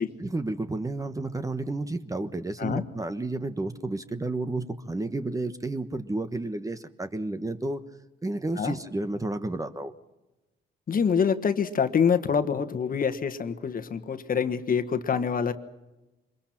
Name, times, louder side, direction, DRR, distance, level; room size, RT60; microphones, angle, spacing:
voice 1, 0.2-7.8 8.2-9.9, right 2 dB, 15° right, 10 dB, 1.1 m, -31 dB
voice 2, 10.9-15.5, left 6 dB, 45° left, 10 dB, 1.5 m, -25 dB
24.5 x 22.0 x 6.0 m, 1.1 s
cardioid pair, 90°, 20 cm